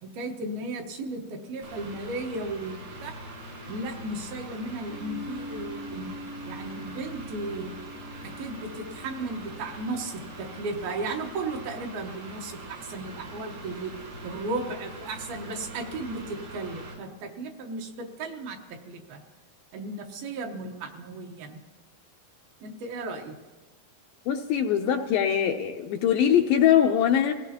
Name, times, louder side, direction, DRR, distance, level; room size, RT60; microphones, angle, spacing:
voice 1, 0.0-3.1 3.7-6.1 6.4-7.7 8.2-13.9 14.2-19.2 19.7-21.6 22.6-23.4, right 2 dB, 75° right, 3 dB, 2.8 m, -35 dB
Mechanical fan, 1.6-16.9, right 1 dB, 90° right, 6.6 m, -43 dB
sound 1, 4.9-12.7, equal, 55° right, 1.3 m, -45 dB
voice 2, 24.3-27.3, left 9 dB, 80° left, 4 dB, 2.1 m, -22 dB
25.5 x 17.5 x 2.9 m, 1.2 s
omnidirectional pair, 4.6 m